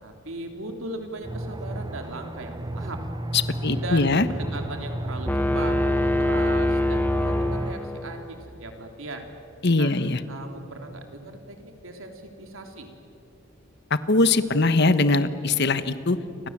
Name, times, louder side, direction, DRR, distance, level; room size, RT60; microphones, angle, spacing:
voice 1, 0.0-3.0 3.7-9.3 9.8-10.0 10.3-12.9, right 2 dB, 75° right, 4 dB, 3.3 m, -38 dB
Aircraft, 1.2-7.8, right 1 dB, 20° right, 0.7 m, -33 dB
voice 2, 3.3-4.3 9.6-10.2 14.1-16.2, left 3 dB, 55° left, 12 dB, 1.2 m, -21 dB
sound 1, 5.3-8.2, left 1 dB, 10° left, 1.2 m, -24 dB
29.5 x 25.5 x 7.5 m, 2.7 s
head